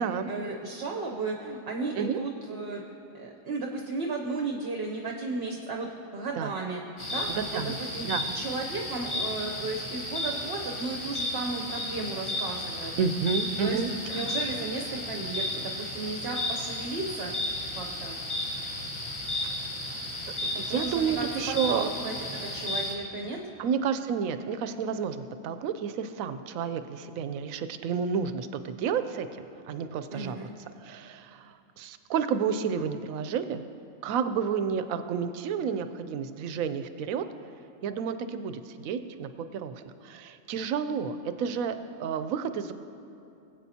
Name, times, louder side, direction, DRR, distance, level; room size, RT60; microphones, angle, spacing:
voice 1, 0.3-2.8 3.1-5.9 6.1-6.8 7.1-8.1 8.3-12.9 13.6-13.8 14.1-17.3 17.7-18.2 20.7-21.3 21.7-23.4 30.1-30.6, right 3 dB, 55° right, 1 dB, 1.0 m, -34 dB
sound 1, 7.0-22.9, left 1 dB, 20° left, 1.3 m, -34 dB
voice 2, 7.3-8.2 13.0-14.2 20.4-21.9 23.6-29.3 29.7-30.5 30.8-33.6 34.0-37.2 37.8-42.7, right 6 dB, 80° right, 10 dB, 1.0 m, -30 dB
20.5 x 8.1 x 2.8 m, 2.8 s
omnidirectional pair, 1.4 m